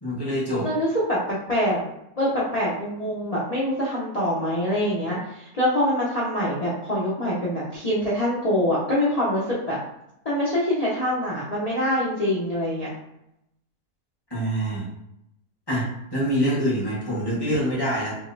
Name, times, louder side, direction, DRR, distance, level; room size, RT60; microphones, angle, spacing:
voice 1, 0.0-0.7 14.3-14.9 15.7-18.2, equal, 15° left, -7 dB, 1.0 m, -25 dB
voice 2, 0.6-1.8 2.2-9.8 10.2-12.9, left 1 dB, 80° left, -7 dB, 0.3 m, -24 dB
4.9 x 2.0 x 2.6 m, 0.82 s
omnidirectional pair, 1.8 m